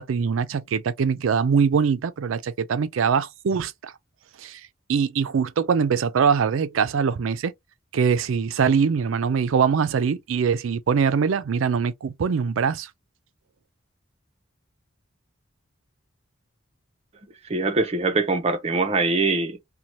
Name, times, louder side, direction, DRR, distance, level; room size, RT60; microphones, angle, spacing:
voice 1, 0.0-3.9 4.4-4.6 4.9-7.5 7.9-12.9, right 6 dB, 75° right, 0.4 m, -22 dB
voice 2, 17.5-19.6, right 3 dB, 30° right, 0.6 m, -23 dB
2.7 x 2.2 x 3.0 m
head